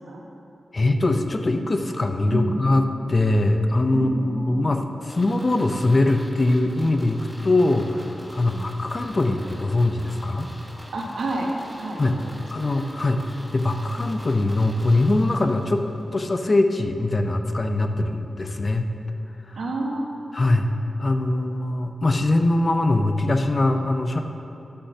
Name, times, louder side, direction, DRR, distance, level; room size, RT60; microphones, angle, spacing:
voice 1, 0.7-8.0 8.3-10.5 12.0-12.2 12.5-13.3 13.5-15.8 16.1-18.9 19.5-19.6 20.3-20.7 21.0-24.2, left 2 dB, 35° left, 6 dB, 0.6 m, -22 dB
voice 2, 2.2-2.6 3.9-4.7 8.4-8.9 10.9-11.5 11.8-12.8 19.5-20.2, right 2 dB, 85° right, -1 dB, 1.3 m, -30 dB
sound 1, 5.1-16.0 16.3-16.4, equal, 5° right, 1.3 m, -44 dB
11.5 x 10.0 x 2.8 m, 2.9 s
wide cardioid pair, 120°, 0 cm